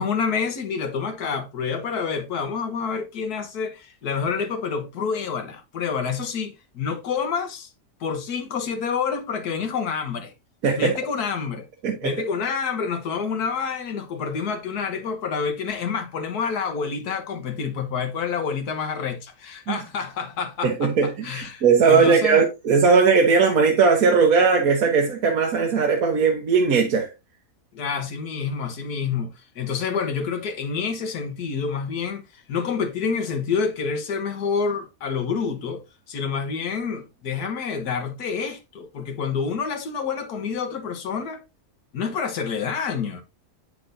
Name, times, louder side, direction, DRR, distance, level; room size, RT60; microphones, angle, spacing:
voice 1, 0.0-7.7 8.0-10.3 10.7-11.7 12.0-22.4 27.7-41.4 41.9-43.2, left 6 dB, 90° left, 1.7 m, -28 dB
voice 2, 10.6-11.0 11.8-12.1 19.7-19.8 20.6-27.1, right 5 dB, 70° right, 1.4 m, -19 dB
8.3 x 6.7 x 2.6 m
omnidirectional pair, 1.6 m